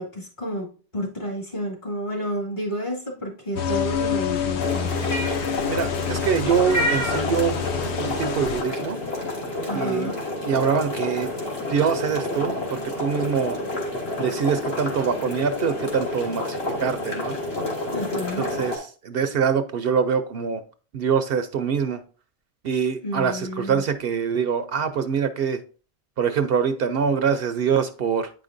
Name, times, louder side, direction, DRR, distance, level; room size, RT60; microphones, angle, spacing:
voice 1, 0.0-4.9 9.7-10.2 17.9-18.5 23.0-23.8, equal, 45° left, -2 dB, 2.2 m, -30 dB
sound 1, 3.6-8.6, left 8 dB, 80° left, 1.0 m, -27 dB
sound 2, 4.6-18.8, left 1 dB, 65° left, 1.9 m, -29 dB
voice 2, 5.7-9.0 9.7-10.1 10.4-11.3 11.7-13.6 14.2-17.4 18.4-20.6 20.9-22.0 22.6-25.6 26.2-28.3, right 6 dB, 65° right, 9 dB, 0.7 m, -24 dB
8.7 x 5.0 x 2.5 m, 0.38 s
omnidirectional pair, 1.1 m